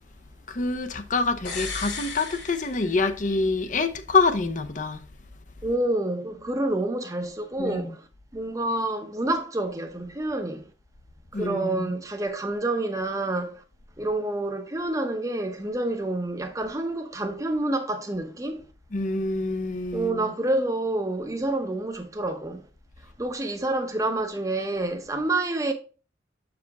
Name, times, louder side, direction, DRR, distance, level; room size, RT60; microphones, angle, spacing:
voice 1, 0.5-5.0 7.6-7.9 11.3-12.0 18.9-20.3, left 3 dB, 40° left, 0.7 m, -26 dB
sound 1, 1.4-3.4 3.7-3.8, left 5 dB, 70° left, 2.2 m, -36 dB
voice 2, 5.6-8.0 8.3-10.6 11.3-13.6 14.0-18.6 19.9-22.6 23.2-25.7, right 2 dB, 15° right, 0.8 m, -28 dB
7.3 x 4.9 x 3.5 m
head